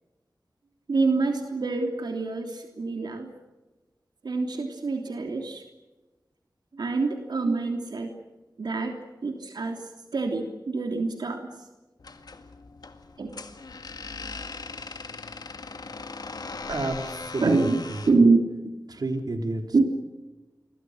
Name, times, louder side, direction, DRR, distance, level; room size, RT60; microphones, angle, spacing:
voice 1, 0.9-3.3 4.2-5.6 6.8-8.1 8.6-8.9 9.2-9.9 10.1-11.5 13.2-13.3 17.4-17.8 18.1-18.4 19.7-19.9, right 3 dB, 90° right, 3 dB, 3.2 m, -25 dB
sound 1, 12.0-18.2, left 3 dB, 70° left, 2.0 m, -39 dB
voice 2, 16.7-18.0 18.9-19.9, right 2 dB, 70° right, 4 dB, 3.6 m, -31 dB
29.0 x 23.5 x 6.5 m, 1.1 s
wide cardioid pair, 75°, 7 cm